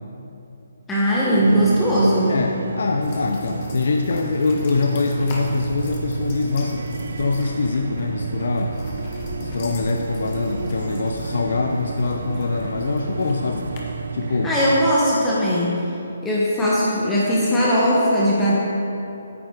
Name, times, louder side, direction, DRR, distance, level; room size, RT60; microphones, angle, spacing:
voice 1, 0.9-2.4 14.4-15.8 16.2-18.5, equal, 10° left, -7 dB, 1.0 m, -19 dB
sound 1, 1.3-15.0, right 5 dB, 70° right, 0.4 m, -31 dB
voice 2, 2.3-8.8 9.4-13.7 14.1-14.5, left 4 dB, 65° left, 4 dB, 0.5 m, -24 dB
sound 2, 3.0-13.8, left 2 dB, 30° left, 1.4 m, -38 dB
9.3 x 8.2 x 4.5 m, 2.9 s
hypercardioid pair, 165°, 0 cm